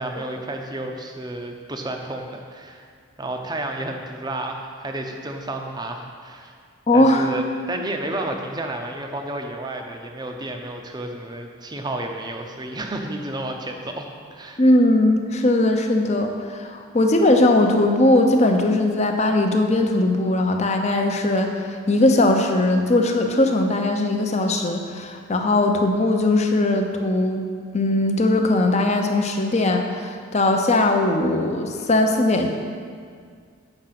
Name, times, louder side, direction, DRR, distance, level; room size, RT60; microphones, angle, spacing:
voice 1, 0.0-2.8 3.2-6.5 6.9-14.6, right 1 dB, 20° right, 3 dB, 0.6 m, -31 dB
voice 2, 6.9-7.3 14.6-32.5, left 2 dB, 30° left, 4 dB, 0.7 m, -19 dB
9.0 x 5.9 x 5.8 m, 2.1 s
head